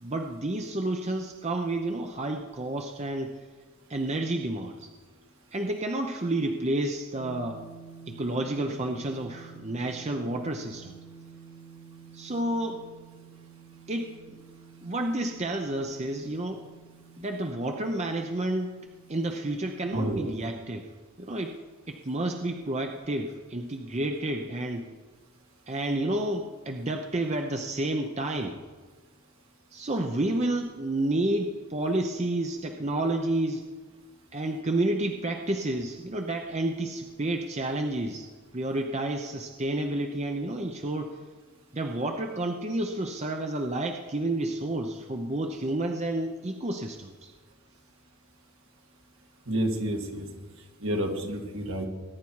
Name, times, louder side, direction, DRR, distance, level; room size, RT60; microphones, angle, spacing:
voice 1, 0.0-3.4 3.9-4.9 5.5-7.7 8.1-11.0 12.1-12.8 13.9-14.4 14.8-16.6 17.2-18.8 19.1-20.9 21.2-21.6 21.9-24.9 25.7-28.6 29.7-33.6 34.3-41.2 41.7-47.3, right 1 dB, 30° right, 4 dB, 0.8 m, -30 dB
sound 1, 7.2-20.3, right 7 dB, 85° left, 1.0 m, -50 dB
voice 2, 19.9-20.3 49.5-50.3 50.8-51.9, right 1 dB, 65° right, 2 dB, 2.1 m, -29 dB
21.5 x 10.0 x 4.7 m, 1.4 s
head